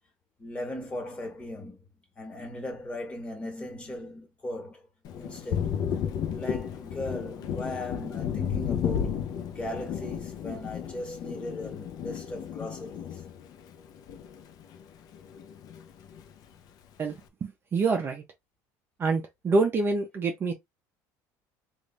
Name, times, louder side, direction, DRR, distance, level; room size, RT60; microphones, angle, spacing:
voice 1, 0.4-1.8 2.2-4.8 5.2-5.7 6.3-9.1 9.5-13.2, left 1 dB, 15° left, 1.7 m, -38 dB
Thunder, 5.0-14.8 15.1-16.3, left 8 dB, 50° left, 0.7 m, -33 dB
voice 2, 17.7-18.2 19.0-20.5, right 3 dB, 30° right, 0.7 m, -26 dB
3.5 x 2.6 x 3.2 m
cardioid pair, 135°, 8 cm